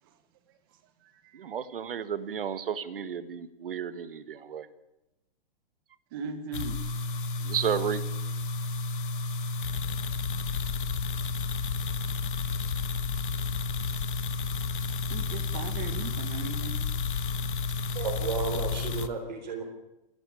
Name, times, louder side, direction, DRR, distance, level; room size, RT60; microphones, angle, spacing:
voice 1, 1.3-4.7 7.4-8.0, right 8 dB, 65° right, 14 dB, 1.7 m, -32 dB
voice 2, 6.1-6.8 15.1-16.7, right 5 dB, 25° right, 10 dB, 1.7 m, -37 dB
sound 1, 6.5-19.1, left 4 dB, 60° left, 1.4 m, -31 dB
voice 3, 17.9-19.6, right 5 dB, 50° right, 3 dB, 3.9 m, -33 dB
28.0 x 11.5 x 8.4 m, 0.92 s
hypercardioid pair, 180°, 30 cm